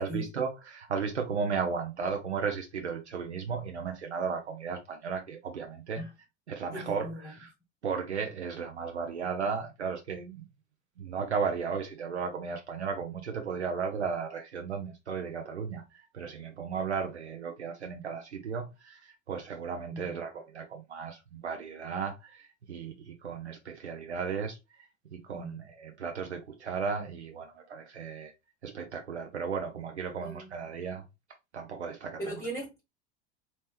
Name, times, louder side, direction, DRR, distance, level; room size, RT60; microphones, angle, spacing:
voice 1, 0.0-6.0 6.5-7.5 7.8-10.4 11.0-24.6 25.1-28.3 28.6-31.0 31.5-32.2, right 5 dB, 75° right, 0.8 m, -35 dB
voice 2, 6.7-7.3 19.9-20.2 25.3-25.5 30.2-30.5 32.2-32.8, right 1 dB, 10° left, 1.2 m, -39 dB
4.2 x 2.9 x 3.4 m
figure-of-eight pair, 80°, 33 cm